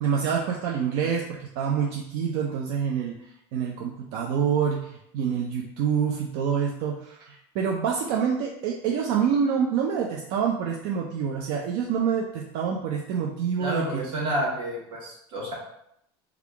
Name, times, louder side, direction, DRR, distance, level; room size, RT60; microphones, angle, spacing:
voice 1, 0.0-14.0, right 7 dB, 65° right, 0 dB, 0.5 m, -27 dB
voice 2, 13.6-15.5, right 1 dB, 40° right, -3 dB, 1.4 m, -29 dB
3.4 x 2.3 x 3.4 m, 0.75 s
supercardioid pair, 120°, 14 cm